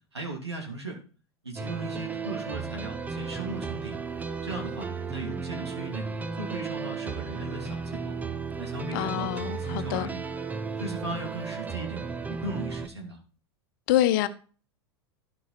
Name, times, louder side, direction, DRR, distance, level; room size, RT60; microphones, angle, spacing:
voice 1, 0.1-1.0 1.4-4.0 4.4-6.1 6.4-8.1 8.6-10.2 10.8-12.0 12.3-13.2, right 2 dB, 85° right, 2.8 m, -37 dB
sound 1, 1.6-12.9, right 5 dB, 10° right, 0.8 m, -34 dB
voice 2, 8.9-10.1 13.9-14.3, left 13 dB, 50° left, 1.0 m, -26 dB
13.5 x 5.8 x 4.2 m
figure-of-eight pair, 90°, 13 cm